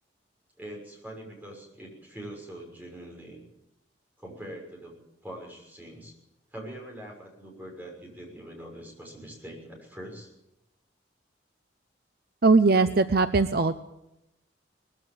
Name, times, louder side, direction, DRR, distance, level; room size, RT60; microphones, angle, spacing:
voice 1, 0.6-3.4 4.2-4.9 5.2-6.1 6.5-10.3, right 1 dB, 10° right, 0 dB, 6.3 m, -43 dB
voice 2, 12.4-13.7, right 3 dB, 55° right, 11 dB, 0.7 m, -20 dB
20.0 x 15.0 x 8.9 m, 0.89 s
head